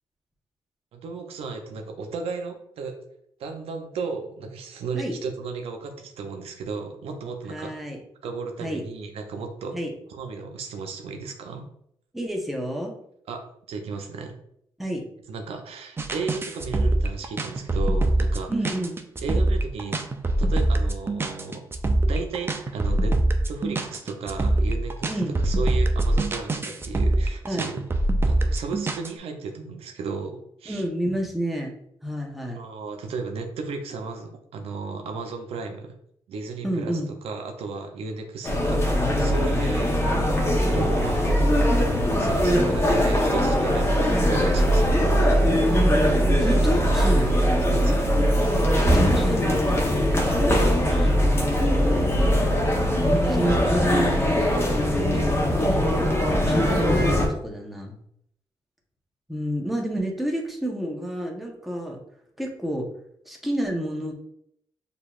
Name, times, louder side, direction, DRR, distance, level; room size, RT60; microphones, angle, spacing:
voice 1, 0.9-2.9 3.4-7.7 8.2-9.8 10.1-11.7 13.3-14.4 15.3-18.5 19.2-20.0 20.4-21.6 22.0-23.2 23.5-25.1 25.4-27.8 28.3-30.8 32.5-35.9 36.3-36.9 37.2-40.0 40.6-41.5 42.2-45.0 47.7-48.0 53.3-54.0, right 4 dB, 80° right, 4 dB, 0.6 m, -34 dB
voice 2, 7.5-8.0 8.6-8.8 9.7-9.9 12.1-12.9 14.8-15.0 18.5-19.0 25.1-25.4 27.4-27.7 30.7-31.7 32.0-32.6 36.6-37.1 44.0-44.3 46.4-47.3 48.8-52.2 53.0-55.8 56.5-58.0 59.3-62.0 62.4-62.9 63.2-64.1, equal, ahead, 0 dB, 0.9 m, -30 dB
sound 1, 16.0-29.1, right 1 dB, 25° right, 0.4 m, -23 dB
sound 2, 38.4-57.3, equal, 25° left, 1.0 m, -21 dB
6.6 x 2.7 x 2.4 m, 0.71 s
cardioid pair, 100°, 10 cm